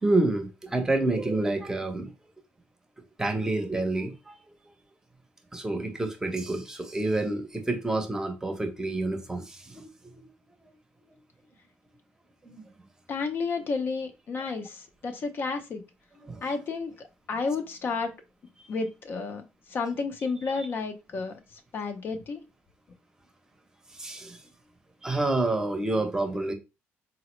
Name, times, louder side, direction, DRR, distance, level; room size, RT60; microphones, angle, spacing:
voice 1, 0.0-2.1 3.2-4.4 5.5-10.3 12.4-12.7 16.2-16.5 18.6-18.7 23.9-24.4 25.0-26.5, right 2 dB, 10° right, 0.7 m, -28 dB
voice 2, 13.1-15.8 16.4-18.1 18.7-22.4, left 4 dB, 45° left, 0.5 m, -32 dB
3.9 x 2.0 x 3.0 m
cardioid pair, 105°, 5 cm